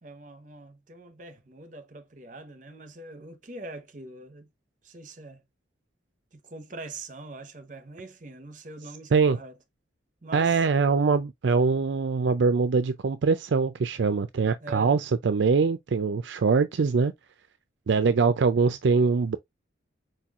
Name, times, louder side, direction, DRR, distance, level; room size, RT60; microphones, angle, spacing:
voice 1, 0.0-4.5 4.8-5.4 6.3-9.5 10.2-10.7 14.6-15.0, right 2 dB, 40° right, 0.9 m, -43 dB
voice 2, 10.3-17.1 17.9-19.4, right 5 dB, 70° right, 0.4 m, -23 dB
4.5 x 4.5 x 2.4 m
head